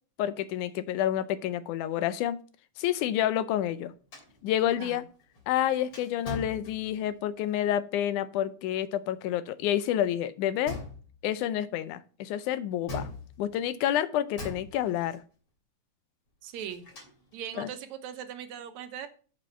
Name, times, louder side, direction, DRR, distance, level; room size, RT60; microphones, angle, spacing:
voice 1, 0.2-2.4 2.8-3.9 4.4-5.0 5.5-10.8 11.2-13.1 13.4-15.2 17.6-17.7, left 11 dB, 90° left, 14 dB, 2.2 m, -29 dB
sound 1, 4.1-7.3 10.7-11.3 12.9-13.7 14.4-15.2 16.4-17.4, left 2 dB, 45° left, 3.8 m, -42 dB
voice 2, 16.4-16.8 17.3-19.1, right 9 dB, 75° right, 8 dB, 2.1 m, -39 dB
7.4 x 5.4 x 6.6 m, 0.39 s
omnidirectional pair, 3.4 m